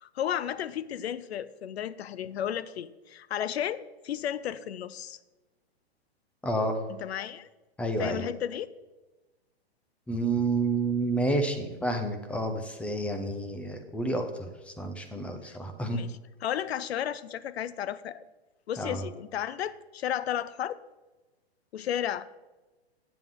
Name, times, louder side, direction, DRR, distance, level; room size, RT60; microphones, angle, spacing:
voice 1, 0.0-5.2 6.9-7.5 8.0-8.7 15.4-15.6 15.9-18.2 18.7-20.8 21.7-22.3, left 10 dB, 75° left, 16 dB, 0.6 m, -33 dB
voice 2, 6.4-6.8 7.8-8.3 10.1-16.0 18.8-19.1, right 2 dB, 5° left, 6 dB, 0.6 m, -30 dB
9.3 x 7.5 x 3.7 m, 1.2 s
hypercardioid pair, 125°, 32 cm